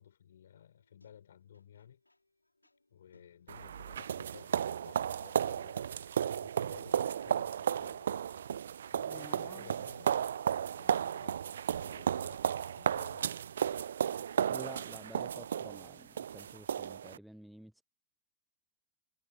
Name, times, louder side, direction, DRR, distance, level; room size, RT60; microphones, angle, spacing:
voice 1, 0.0-2.0 2.9-5.8 6.4-8.6 8.9-10.2 10.8-11.5 11.8-13.4, left 9 dB, 65° left, 7.5 m, -56 dB
sound 1, 0.7-14.7, left 2 dB, 85° left, 6.0 m, -73 dB
sound 2, 3.5-17.2, right 8 dB, 65° right, 0.4 m, -34 dB
voice 2, 9.0-9.8 14.5-17.8, equal, ahead, 0.5 m, -51 dB
figure-of-eight pair, 90°, 0 cm